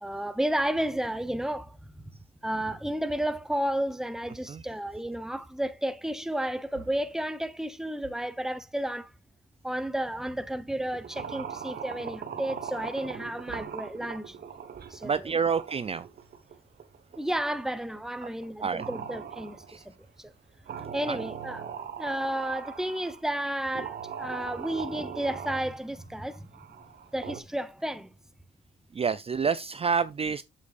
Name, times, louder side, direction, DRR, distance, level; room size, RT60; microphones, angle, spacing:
voice 1, 0.0-2.0 2.4-9.1 9.6-14.4 14.9-15.3 17.2-19.8 20.2-20.3 20.9-26.5 27.1-28.1, right 1 dB, ahead, 0.9 m, -32 dB
Wood, 6.3-8.5 9.6-9.7 10.0-11.2 11.7-11.8 13.0-14.0 16.0-16.9, right 8 dB, 85° right, 1.6 m, -54 dB
sound 1, 10.9-18.0 18.4-18.5 18.8-19.9 20.7-23.2 23.7-27.4, right 7 dB, 55° right, 1.5 m, -40 dB
voice 2, 15.0-16.1 18.2-18.3 18.6-18.8 19.7-19.8 21.1-21.2 28.9-30.4, right 6 dB, 30° right, 0.5 m, -28 dB
8.2 x 7.5 x 2.5 m
cardioid pair, 90°, 20 cm